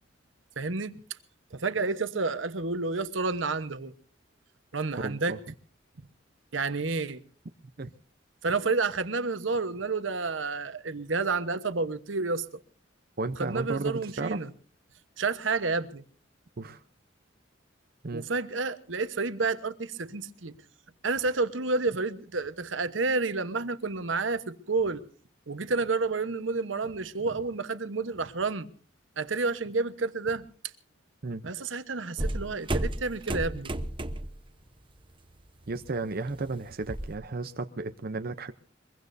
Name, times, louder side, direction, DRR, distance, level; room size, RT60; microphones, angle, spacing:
voice 1, 0.6-1.0 1.5-3.9 4.7-5.4 6.5-7.2 8.4-12.4 13.4-14.5 15.2-16.0 18.1-20.6 21.0-25.0 25.5-28.7 29.2-30.5 31.4-33.7, right 3 dB, 80° right, 1.1 m, -30 dB
voice 2, 5.0-5.4 7.8-7.9 13.2-14.4 16.6-16.8 18.0-18.3 31.2-31.4 35.7-38.5, right 3 dB, 50° right, 0.7 m, -33 dB
sound 1, 32.2-34.4 34.8-35.1 35.5-37.2, right 1 dB, 25° right, 1.0 m, -32 dB
23.0 x 22.5 x 2.7 m
head